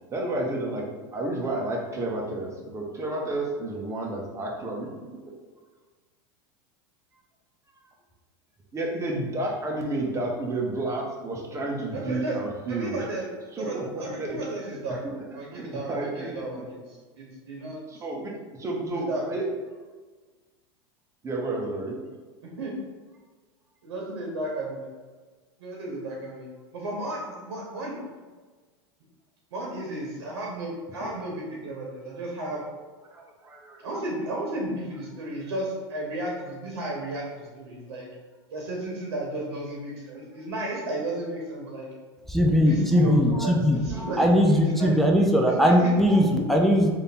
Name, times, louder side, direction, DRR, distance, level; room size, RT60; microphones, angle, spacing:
voice 1, 0.1-4.9 5.2-5.3 8.7-13.0 13.5-15.1 15.5-16.5 17.6-19.4 21.2-22.0 31.0-31.1 33.1-33.8, right 2 dB, 20° right, -1 dB, 0.9 m, -31 dB
voice 2, 11.9-12.4 12.7-13.3 13.5-15.0 15.3-16.8 17.2-17.8 19.1-19.3 22.4-22.7 23.8-24.9 25.6-26.5 26.7-28.0 29.5-32.6 33.8-38.1 38.5-41.9 42.7-45.0 45.4-46.0, right 1 dB, 85° right, -2 dB, 1.0 m, -33 dB
voice 3, 42.3-46.9, equal, ahead, 0 dB, 0.5 m, -20 dB
3.4 x 2.7 x 4.2 m, 1.4 s
hypercardioid pair, 110°, 14 cm